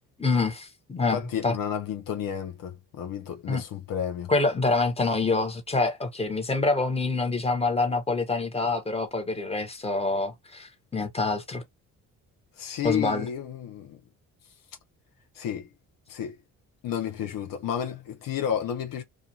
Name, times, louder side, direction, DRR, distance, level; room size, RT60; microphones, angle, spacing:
voice 1, 0.2-1.6 3.5-3.6 4.3-11.6 12.8-13.3, left 3 dB, 15° left, 1.2 m, -26 dB
voice 2, 1.1-4.3 12.6-14.0 15.3-15.7 16.1-16.4 16.8-19.0, left 9 dB, 70° left, 0.8 m, -31 dB
2.5 x 2.4 x 2.8 m
supercardioid pair, 65°, 34 cm